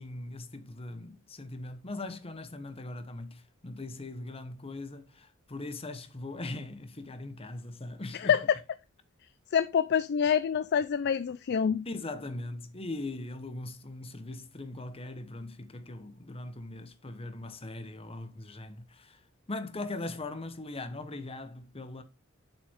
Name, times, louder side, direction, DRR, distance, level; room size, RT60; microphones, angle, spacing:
voice 1, 0.0-8.4 11.8-19.2 19.5-22.0, left 2 dB, 30° left, 1.0 m, -40 dB
voice 2, 9.5-11.9, left 7 dB, 50° left, 0.4 m, -26 dB
7.3 x 6.0 x 3.6 m
head